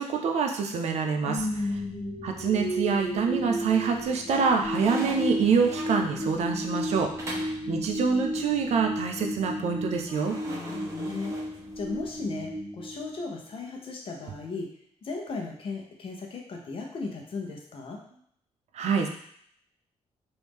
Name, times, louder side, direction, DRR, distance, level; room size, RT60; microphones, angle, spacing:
voice 1, 0.0-1.4 2.2-7.1 7.7-10.3 18.7-19.1, right 5 dB, 70° right, 4 dB, 0.5 m, -26 dB
voice 2, 1.2-2.0 7.2-7.4 10.5-11.3 11.8-14.7 15.0-18.0, left 3 dB, 50° left, 1 dB, 0.8 m, -36 dB
sound 1, 1.4-13.5, equal, 10° left, 1.3 m, -34 dB
sound 2, 3.0-3.5 3.9-7.6 10.1-12.1, right 1 dB, 25° right, 0.9 m, -42 dB
3.1 x 2.6 x 3.5 m, 0.66 s
cardioid pair, 120°, 12 cm